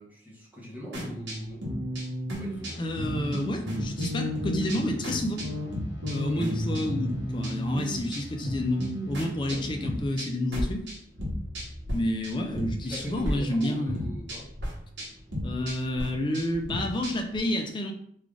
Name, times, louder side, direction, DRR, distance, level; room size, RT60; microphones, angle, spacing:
voice 1, 0.0-1.7 2.3-2.8 6.2-6.6 12.8-14.5, equal, 10° right, -6 dB, 0.9 m, -42 dB
sound 1, 0.9-12.0 12.2-13.3 13.6-17.4, equal, 75° right, 1.1 m, -33 dB
sound 2, 2.3-10.0, left 2 dB, 85° left, 1.0 m, -45 dB
voice 2, 2.8-5.4 6.1-10.8 11.9-14.1 15.4-17.9, left 1 dB, 25° left, 3 dB, 0.4 m, -30 dB
3.2 x 2.4 x 3.6 m, 0.66 s
head